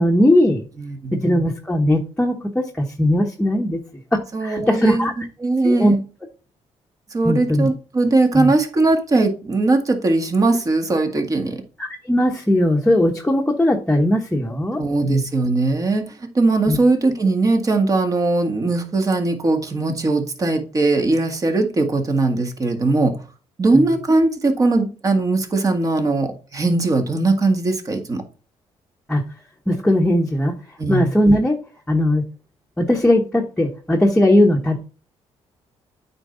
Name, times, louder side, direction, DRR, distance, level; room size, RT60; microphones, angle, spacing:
voice 1, 0.0-0.6 1.1-3.8 4.1-5.1 5.6-5.9 7.2-7.7 8.3-8.5 11.8-14.8 15.0-15.2 16.7-16.8 23.7-23.9 29.1-29.2 29.7-30.5 30.9-31.5 31.9-32.2 32.8-34.9, left 1 dB, 10° left, 1.1 m, -18 dB
voice 2, 0.8-1.2 4.3-5.1 5.4-6.0 7.1-11.6 14.8-16.1 16.4-23.1 23.6-28.2 30.8-31.1, right 2 dB, 30° right, 1.8 m, -19 dB
8.8 x 4.6 x 3.9 m
cardioid pair, 105°, 11 cm